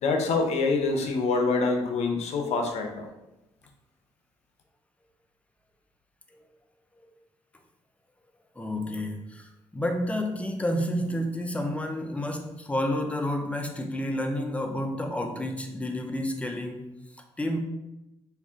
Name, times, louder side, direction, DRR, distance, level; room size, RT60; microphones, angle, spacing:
voice 1, 0.0-3.1, left 3 dB, 70° left, 4 dB, 0.6 m, -26 dB
voice 2, 8.6-16.9 17.4-17.6, left 1 dB, 10° left, 4 dB, 0.5 m, -30 dB
3.3 x 2.5 x 3.6 m, 0.96 s
supercardioid pair, 65°, 12 cm